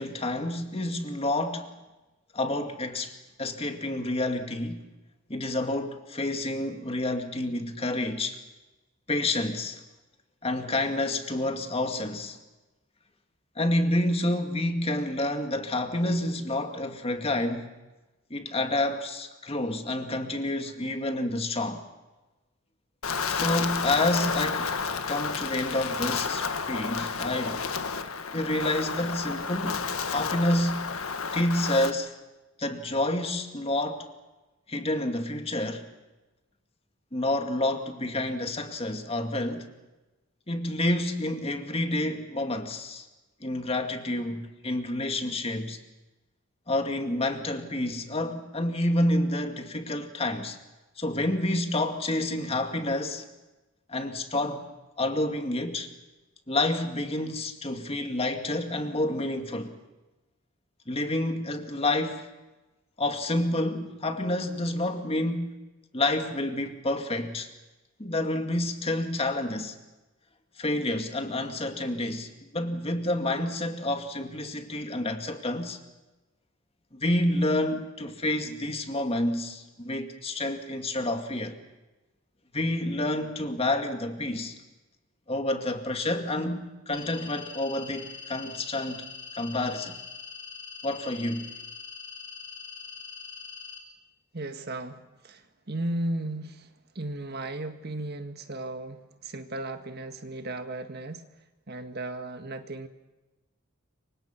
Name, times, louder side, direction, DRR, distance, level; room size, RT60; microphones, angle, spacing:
voice 1, 0.0-1.7 2.3-4.8 5.3-8.4 9.1-9.8 10.4-12.4 13.6-17.7 18.3-21.8 23.3-24.8 25.0-27.7 28.3-30.8 31.3-32.1 32.6-34.1 34.7-35.9 37.1-39.7 40.5-43.1 43.4-45.8 46.7-50.6 51.0-53.3 53.9-54.7 55.0-55.9 56.5-59.7 60.9-62.3 63.0-65.6 65.9-67.5 68.0-69.7 70.6-75.8 76.9-81.6 82.5-84.6 85.3-89.0 89.3-90.0 90.8-91.5, left 1 dB, 30° left, 2.3 m, -29 dB
Wind, 23.0-31.9, left 5 dB, 90° left, 1.6 m, -31 dB
sound 1, 86.9-93.8, left 5 dB, 50° left, 4.6 m, -43 dB
voice 2, 94.3-101.3 101.7-102.9, right 1 dB, 50° right, 1.8 m, -35 dB
28.5 x 25.0 x 5.9 m
head